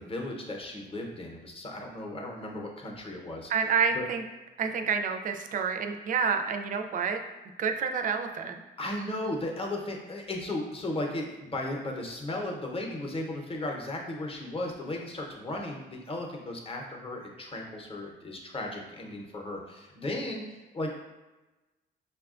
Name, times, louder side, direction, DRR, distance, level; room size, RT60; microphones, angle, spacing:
voice 1, 0.0-3.5 3.9-4.0 8.8-21.0, left 1 dB, 30° left, 0 dB, 0.7 m, -35 dB
voice 2, 3.5-4.2 4.6-7.2 7.6-8.6, right 6 dB, 40° right, 5 dB, 0.4 m, -28 dB
5.4 x 2.2 x 2.4 m, 1.1 s
cardioid pair, 90°, 20 cm